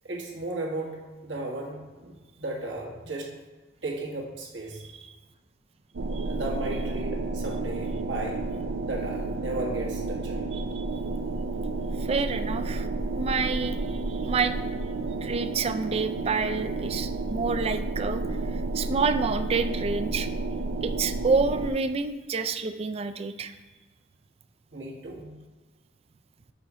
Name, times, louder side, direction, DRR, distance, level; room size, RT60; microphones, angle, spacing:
voice 1, 0.0-3.3 3.8-4.8 6.3-8.5 8.8-10.4 24.7-25.3, right 2 dB, 70° right, -2 dB, 1.6 m, -35 dB
sound 1, 5.9-21.7, right 3 dB, 85° right, 0.5 m, -31 dB
voice 2, 10.5-10.8 12.0-12.8 13.1-14.5 15.2-18.2 18.7-20.3 20.8-23.5, right 4 dB, 30° right, 9 dB, 0.4 m, -28 dB
6.9 x 4.1 x 4.9 m, 1.3 s
head